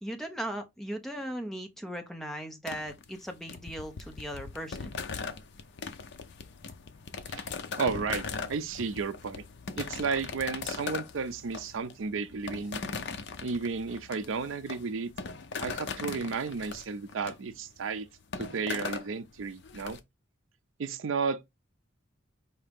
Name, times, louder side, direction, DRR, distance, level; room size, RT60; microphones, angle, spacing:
voice 1, 0.0-4.9, equal, ahead, 0.7 m, -38 dB
sound 1, 2.7-20.0, left 5 dB, 55° left, 0.5 m, -39 dB
voice 2, 7.8-9.4 9.8-12.8 13.4-15.1 15.6-18.1 18.4-20.0 20.8-21.4, right 5 dB, 65° right, 0.5 m, -33 dB
4.8 x 2.8 x 3.4 m
head